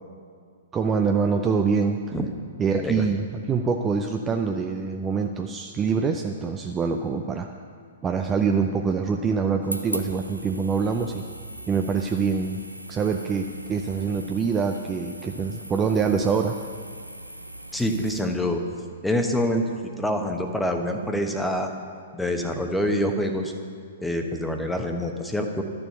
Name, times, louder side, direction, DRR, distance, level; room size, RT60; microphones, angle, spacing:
voice 1, 0.7-2.0 2.6-7.5 8.0-11.2 11.7-12.6 12.9-16.6, right 5 dB, 15° right, 4 dB, 0.5 m, -25 dB
sound 1, 9.6-18.2, right 1 dB, 85° right, 0.8 m, -39 dB
voice 2, 17.7-18.6 19.0-19.7 20.0-21.7 22.1-23.5 24.0-25.6, left 1 dB, 5° left, 4 dB, 1.1 m, -26 dB
12.0 x 7.0 x 8.0 m, 2.1 s
figure-of-eight pair, 110°, 0 cm